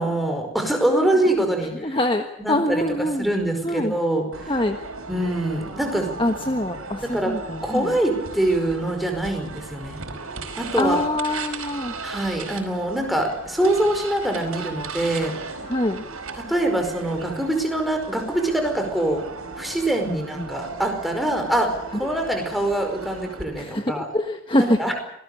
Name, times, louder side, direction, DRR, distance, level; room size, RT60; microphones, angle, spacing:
voice 1, 0.0-2.0 2.4-4.5 5.1-6.1 7.0-7.3 7.6-10.0 10.5-11.0 12.0-15.3 16.4-19.2 19.6-24.1 24.6-24.9, right 1 dB, ahead, 3 dB, 5.0 m, -24 dB
voice 2, 1.8-3.3 3.6-3.9 4.5-4.8 6.2-7.9 10.7-11.9 15.7-16.0 20.1-20.5 23.6-24.8, left 1 dB, 25° left, 5 dB, 1.4 m, -24 dB
sound 1, 4.3-23.4, right 4 dB, 90° right, 4.8 m, -36 dB
26.0 x 19.5 x 6.8 m, 0.80 s
head